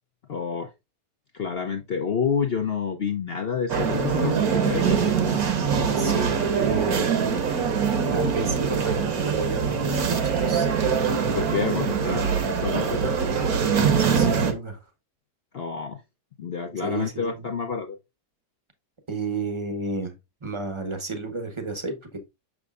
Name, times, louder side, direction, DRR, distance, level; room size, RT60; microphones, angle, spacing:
voice 1, 0.3-0.7 1.3-5.4 11.3-13.1 15.5-16.0 16.4-18.0, left 6 dB, 65° left, 0.6 m, -29 dB
sound 1, 3.7-14.5, right 6 dB, 65° right, 1.4 m, -23 dB
voice 2, 6.0-7.1 8.1-10.7 13.7-14.8 16.8-17.5 19.1-20.1 20.4-22.2, right 3 dB, 25° right, 0.7 m, -32 dB
6.5 x 6.1 x 2.4 m
omnidirectional pair, 1.8 m